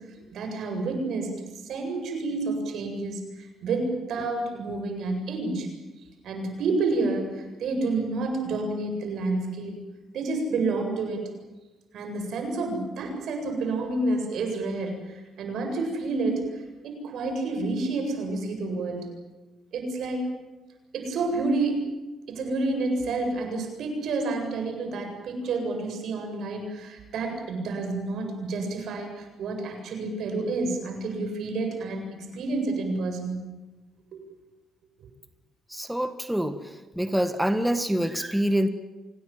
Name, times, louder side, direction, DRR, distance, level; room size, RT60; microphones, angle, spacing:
voice 1, 0.3-1.4 1.6-5.7 6.2-9.8 10.1-11.2 11.9-19.1 19.7-20.3 20.9-21.8 22.3-33.4 34.1-34.2, right 3 dB, 70° right, 4 dB, 7.8 m, -29 dB
voice 2, 35.7-36.6 37.0-38.7, equal, 5° right, 9 dB, 1.6 m, -25 dB
26.0 x 19.0 x 9.3 m, 1.1 s
cardioid pair, 90°, 0 cm